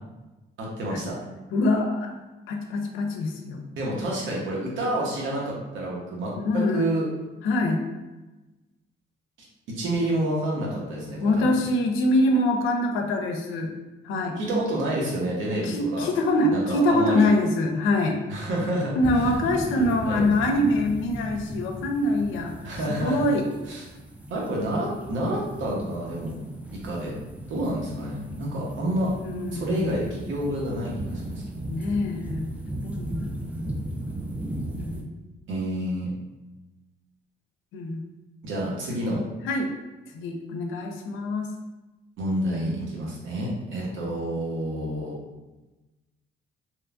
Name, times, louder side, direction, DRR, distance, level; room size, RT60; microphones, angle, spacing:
voice 1, 0.6-1.2 3.8-6.3 6.7-7.1 9.7-11.3 14.4-16.1 16.5-17.3 18.3-19.3 19.7-20.3 22.6-23.3 23.7-23.8 24.3-26.3 26.7-27.2 27.5-29.1 29.5-31.4 35.5-36.1 38.4-39.2 42.2-45.1, right 1 dB, 75° right, -3 dB, 0.9 m, -29 dB
voice 2, 1.5-2.2 2.5-3.6 6.3-6.9 7.4-7.8 11.2-13.7 14.0-14.4 15.6-18.2 19.0-22.6 23.0-23.4 29.2-30.1 31.7-32.5 32.8-33.7 34.8-35.1 37.7-38.0 39.5-39.7 40.1-41.5, left 1 dB, 90° left, 3 dB, 0.4 m, -24 dB
sound 1, 19.0-35.0, right 1 dB, 5° right, 0.3 m, -36 dB
2.9 x 2.2 x 2.4 m, 1.1 s
cardioid pair, 90°, 20 cm